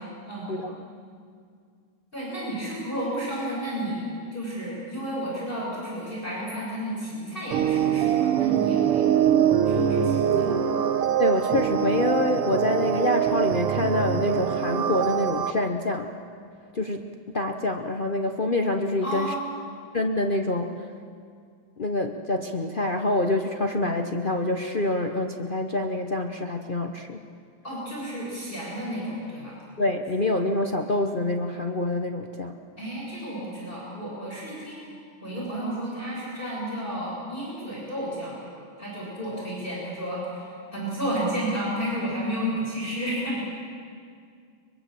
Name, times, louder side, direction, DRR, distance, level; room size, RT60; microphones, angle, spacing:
voice 1, 0.2-0.5 2.1-9.1 9.6-10.6 19.0-19.6 27.6-29.6 32.8-34.9 35.2-38.4 38.8-43.5, equal, 25° left, -6 dB, 6.7 m, -32 dB
sound 1, 7.5-15.5, right 9 dB, 90° right, 2.0 m, -23 dB
voice 2, 11.2-16.1 16.7-17.1 17.3-19.3 19.9-20.7 21.8-27.2 29.8-32.6, left 2 dB, 45° left, 4 dB, 0.6 m, -26 dB
23.5 x 23.0 x 7.7 m, 2.2 s
omnidirectional pair, 2.4 m